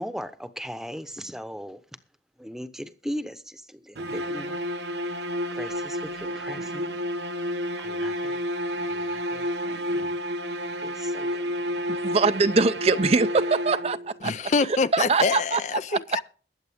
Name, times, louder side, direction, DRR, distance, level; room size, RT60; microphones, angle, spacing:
voice 1, 0.0-1.8 2.4-4.6 5.6-6.9 7.8-8.4 8.9-9.5 10.8-11.5, equal, 5° right, 0.9 m, -38 dB
sound 1, 4.0-14.2, equal, 80° right, 1.1 m, -30 dB
voice 2, 11.9-14.3 14.9-15.6 15.9-16.0, right 4 dB, 35° right, 0.5 m, -22 dB
voice 3, 14.2-16.2, left 4 dB, 40° left, 0.5 m, -25 dB
21.5 x 8.0 x 3.5 m
head